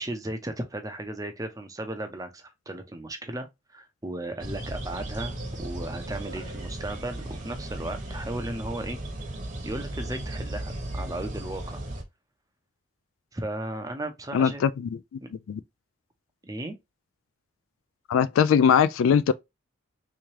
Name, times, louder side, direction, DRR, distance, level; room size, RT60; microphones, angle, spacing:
voice 1, 0.0-9.0 9.6-11.8 13.3-14.6 15.2-15.3 16.4-16.8, right 1 dB, 15° right, 0.6 m, -35 dB
sound 1, 4.4-12.0, right 1 dB, 40° right, 1.0 m, -36 dB
voice 2, 14.3-15.0 15.5-15.6 18.1-19.3, left 7 dB, 80° left, 0.3 m, -21 dB
3.5 x 3.2 x 2.8 m
head